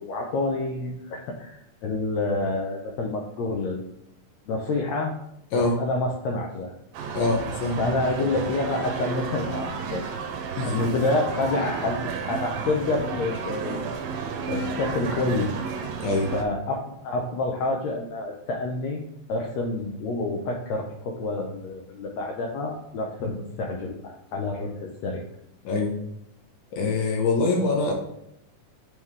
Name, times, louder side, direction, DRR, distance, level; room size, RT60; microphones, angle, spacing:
voice 1, 0.0-3.8 4.5-5.1 5.5-6.7 7.8-10.0 10.5-13.8 14.5-15.5 16.3-19.0 19.3-25.2, left 2 dB, 90° left, 0 dB, 1.5 m, -28 dB
sound 1, 6.9-16.4, right 5 dB, 85° right, 2.4 m, -32 dB
voice 2, 7.1-7.8 10.6-10.7 16.0-16.3 23.2-23.3 25.6-25.9 26.7-27.9, left 3 dB, 70° left, 1 dB, 2.3 m, -24 dB
9.8 x 3.7 x 3.2 m, 0.78 s
omnidirectional pair, 3.9 m